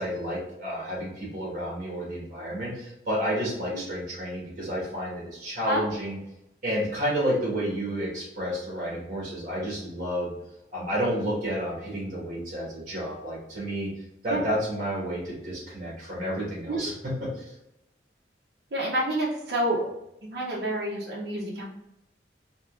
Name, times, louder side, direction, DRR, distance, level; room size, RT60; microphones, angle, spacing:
voice 1, 0.0-6.2 6.6-10.3 10.7-13.9 14.2-17.5, equal, 45° right, -4 dB, 1.4 m, -30 dB
voice 2, 18.7-19.8 20.2-21.6, right 1 dB, 60° right, -4 dB, 0.7 m, -28 dB
3.8 x 2.8 x 2.4 m, 0.87 s
head